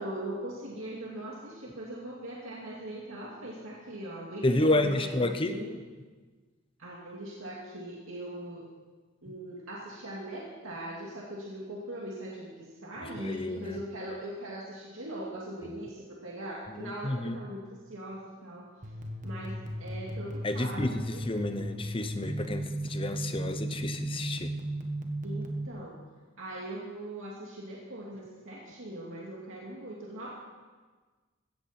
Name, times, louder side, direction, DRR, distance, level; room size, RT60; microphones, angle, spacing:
voice 1, 0.0-5.8 6.8-8.7 9.2-18.9 19.2-21.6 25.2-26.0 26.4-30.3, right 1 dB, 80° right, -4 dB, 2.3 m, -40 dB
voice 2, 4.4-5.6 13.2-13.8 17.0-17.4 20.4-24.5, left 1 dB, 25° left, 8 dB, 0.8 m, -30 dB
sound 1, 18.8-25.7, right 1 dB, 40° right, 1.4 m, -35 dB
17.0 x 14.0 x 4.4 m, 1.4 s
head